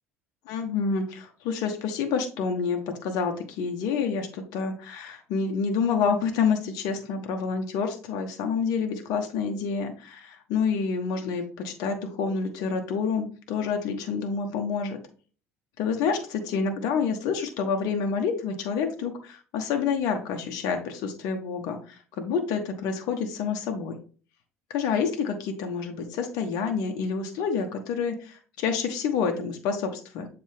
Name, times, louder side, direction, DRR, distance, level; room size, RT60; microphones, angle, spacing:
voice 1, 0.5-15.0 15.8-23.9 24.7-30.3, left 5 dB, 60° left, 5 dB, 1.0 m, -28 dB
7.4 x 3.8 x 3.5 m, 0.39 s
hypercardioid pair, 65°, 7 cm